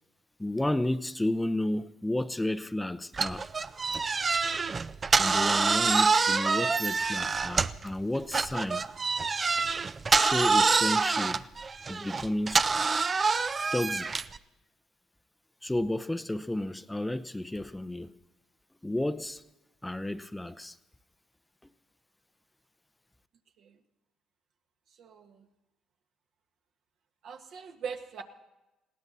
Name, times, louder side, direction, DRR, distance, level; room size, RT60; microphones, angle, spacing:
voice 1, 0.4-3.5 5.2-8.9 10.1-11.5 11.9-12.7 13.7-14.1 15.6-18.1 18.8-19.4 19.8-20.8 21.6-21.7, left 1 dB, 10° left, 0.7 m, -32 dB
sound 1, 3.1-7.9 8.3-14.4, right 4 dB, 35° right, 0.6 m, -26 dB
voice 2, 25.0-25.4 27.2-28.2, right 6 dB, 70° right, 1.7 m, -41 dB
20.0 x 17.0 x 4.1 m
supercardioid pair, 75°, 0 cm